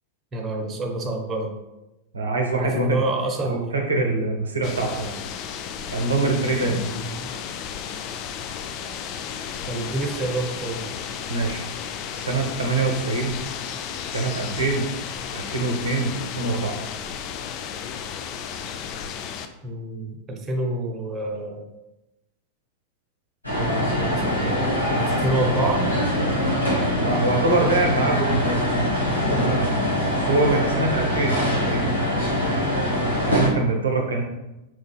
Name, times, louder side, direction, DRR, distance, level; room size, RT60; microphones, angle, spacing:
voice 1, 0.3-1.5 2.6-3.8 6.6-7.3 9.6-10.8 19.6-21.6 23.5-24.6 25.0-25.9, right 2 dB, 20° right, 0 dB, 0.7 m, -28 dB
voice 2, 2.1-3.0 3.4-5.2 5.9-6.8 11.3-11.6 12.1-13.4 14.1-14.9 15.3-16.8 27.0-29.7 30.3-31.9 33.2-34.2, right 3 dB, 75° right, 1 dB, 0.6 m, -24 dB
sound 1, 4.6-19.5, left 8 dB, 40° left, 0.3 m, -33 dB
sound 2, 23.4-33.5, equal, 85° left, 1.4 m, -23 dB
4.7 x 3.8 x 2.3 m, 0.97 s
figure-of-eight pair, 90°, 0 cm